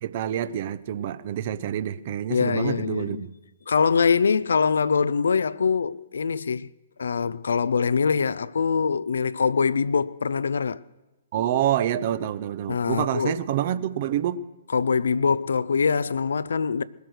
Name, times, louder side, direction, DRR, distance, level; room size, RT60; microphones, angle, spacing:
voice 1, 0.0-3.3 11.3-14.4, right 11 dB, 45° right, 0.8 m, -27 dB
voice 2, 2.3-3.2 3.7-6.7 7.0-10.8 12.7-13.3 14.7-16.8, left 5 dB, 65° left, 0.5 m, -23 dB
20.5 x 8.2 x 6.4 m
figure-of-eight pair, 120°, 0 cm